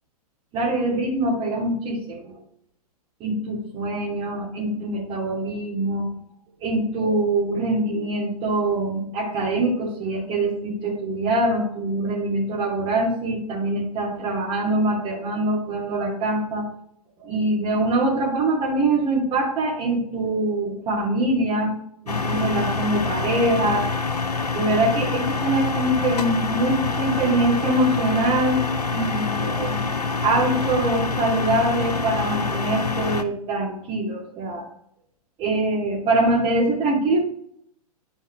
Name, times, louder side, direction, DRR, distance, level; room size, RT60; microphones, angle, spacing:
voice 1, 0.5-2.4 3.2-6.1 6.6-16.7 17.2-21.7 22.0-23.9 24.5-28.6 28.9-34.6 35.4-37.2, right 2 dB, 30° right, -7 dB, 2.8 m, -24 dB
sound 1, 22.1-33.2, left 4 dB, 85° left, 0.8 m, -26 dB
12.5 x 4.7 x 3.2 m, 0.68 s
figure-of-eight pair, 110°, 20 cm